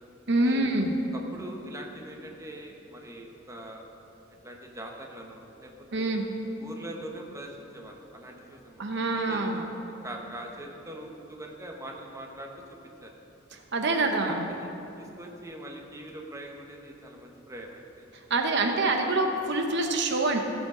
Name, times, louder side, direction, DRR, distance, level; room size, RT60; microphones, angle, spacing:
voice 1, 0.3-1.0 5.9-6.2 8.8-9.6 13.5-14.5 18.3-20.4, right 2 dB, 65° right, 3 dB, 0.9 m, -26 dB
voice 2, 1.1-3.8 4.4-6.2 6.6-9.5 10.0-12.5 13.0-13.1 14.1-14.7 15.0-18.1, right 1 dB, 15° right, 1 dB, 1.0 m, -42 dB
16.5 x 8.0 x 3.8 m, 2.9 s
head